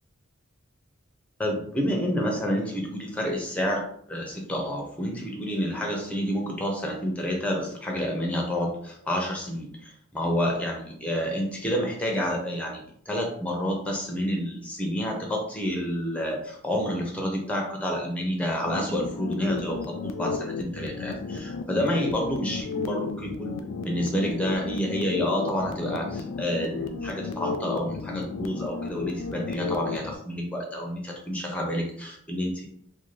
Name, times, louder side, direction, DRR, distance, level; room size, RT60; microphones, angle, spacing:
voice 1, 1.4-23.5 23.8-32.7, equal, 5° left, 0 dB, 0.6 m, -29 dB
sound 1, 18.6-30.2, left 4 dB, 65° left, 0.3 m, -34 dB
2.6 x 2.1 x 3.1 m, 0.64 s
head